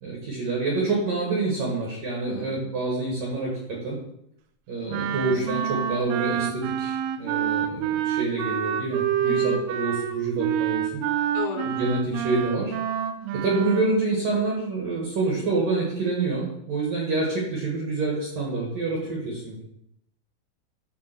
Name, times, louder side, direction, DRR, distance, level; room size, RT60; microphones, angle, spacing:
voice 1, 0.0-4.0 4.7-11.0 11.6-12.7 13.3-19.6, right 3 dB, 65° right, -3 dB, 2.2 m, -27 dB
voice 2, 2.3-2.6 9.3-9.6 11.3-11.7, left 7 dB, 80° left, 3 dB, 2.9 m, -33 dB
Wind instrument woodwind instrument, 4.9-13.9, right 9 dB, 85° right, 3.1 m, -27 dB
10.5 x 3.5 x 6.6 m, 0.79 s
omnidirectional pair, 5.9 m